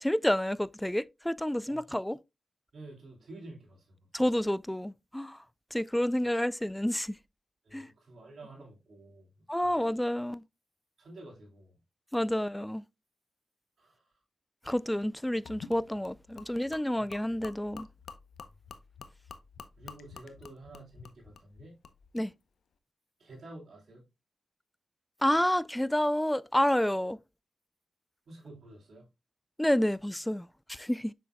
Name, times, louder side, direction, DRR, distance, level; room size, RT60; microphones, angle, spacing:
voice 1, 0.0-2.2 4.1-5.4 5.7-7.2 7.7-7.9 9.5-10.4 12.1-12.8 14.6-17.9 22.1-22.3 25.2-27.2 29.6-31.1, left 1 dB, 10° left, 0.3 m, -29 dB
voice 2, 2.7-3.9 4.2-4.3 6.2-6.3 7.6-9.3 9.6-9.8 11.0-11.8 13.8-14.1 19.8-21.7 23.2-24.0 28.3-29.1, right 2 dB, 75° right, 3.0 m, -50 dB
Gurgling / Liquid, 15.4-22.3, left 6 dB, 85° left, 0.6 m, -50 dB
7.0 x 6.2 x 2.2 m
cardioid pair, 55°, 0 cm